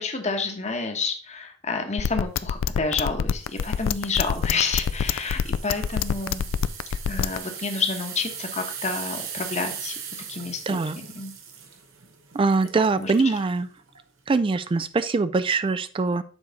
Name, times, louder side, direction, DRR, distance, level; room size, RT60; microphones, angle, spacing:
voice 1, 0.0-6.5 7.1-10.0 10.3-10.8 11.1-11.3 13.0-13.1, left 4 dB, 35° left, 5 dB, 1.1 m, -29 dB
sound 1, 2.0-7.4, left 7 dB, 75° left, 0.3 m, -24 dB
sound 2, 3.4-13.3 13.8-14.0 14.6-14.7, right 7 dB, 80° right, 1.2 m, -39 dB
voice 2, 10.7-11.0 12.3-13.7 14.3-16.2, right 4 dB, 25° right, 14 dB, 0.3 m, -23 dB
7.2 x 4.7 x 4.0 m, 0.40 s
head